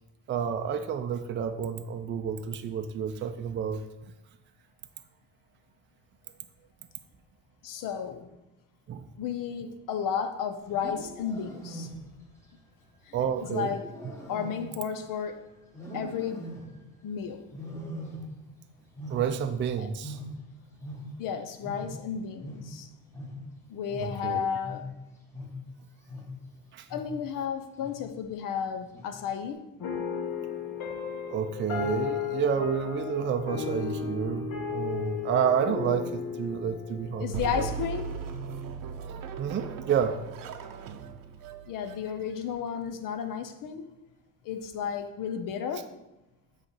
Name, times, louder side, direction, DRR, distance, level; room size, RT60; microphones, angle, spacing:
voice 1, 0.3-3.8 8.9-9.1 13.1-13.8 19.1-20.2 24.0-24.5 26.7-26.9 31.3-37.7 39.1-40.2, right 8 dB, 35° right, 7 dB, 0.4 m, -30 dB
voice 2, 7.6-8.3 9.2-11.9 13.1-13.9 14.3-15.4 15.9-16.6 17.0-17.5 19.8-19.9 21.2-22.9 23.7-24.9 26.9-29.7 37.2-38.2 41.7-43.8 44.4-45.9, left 7 dB, 70° left, 7 dB, 0.7 m, -33 dB
Wild animals, 10.6-12.3 13.4-15.3 15.7-16.9 17.5-18.6 18.8-21.4 21.6-26.5 26.9-27.3 27.8-28.2 28.9-29.4, equal, 10° left, 1.3 m, -42 dB
sound 1, 29.8-38.4, left 7 dB, 85° left, 1.5 m, -34 dB
sound 2, 37.3-42.8, right 7 dB, 70° right, 0.7 m, -38 dB
7.5 x 3.2 x 5.6 m, 0.95 s
cardioid pair, 145°, 34 cm